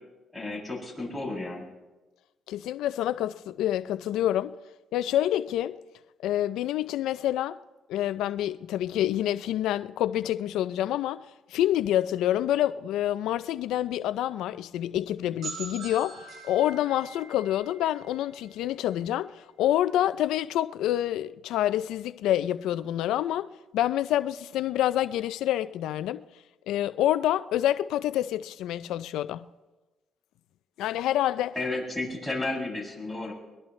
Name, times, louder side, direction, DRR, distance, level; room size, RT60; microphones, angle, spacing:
voice 1, 0.3-1.7 31.5-33.3, left 2 dB, 5° left, 7.1 m, -32 dB
voice 2, 2.5-4.5 4.9-5.8 6.2-7.6 7.9-11.2 11.5-23.5 23.7-26.2 26.7-29.5 30.8-31.5, left 12 dB, 90° left, 0.4 m, -27 dB
sound 1, 15.4-19.1, right 4 dB, 70° right, 4.4 m, -43 dB
22.0 x 19.5 x 3.2 m
cardioid pair, 90°, 0 cm